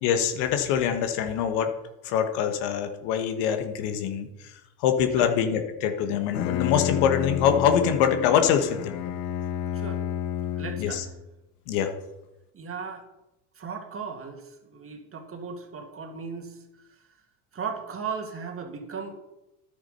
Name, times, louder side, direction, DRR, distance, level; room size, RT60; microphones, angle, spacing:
voice 1, 0.0-1.7 2.0-4.5 4.8-9.0 10.8-11.0 11.7-11.9, left 8 dB, 75° left, 6 dB, 1.4 m, -24 dB
Bowed string instrument, 6.1-11.2, left 11 dB, 90° left, 0.9 m, -30 dB
voice 2, 10.5-11.0 12.5-13.0 13.6-16.6 17.5-19.2, right 5 dB, 30° right, 4 dB, 2.2 m, -36 dB
10.5 x 8.7 x 5.6 m, 0.94 s
supercardioid pair, 100°, 41 cm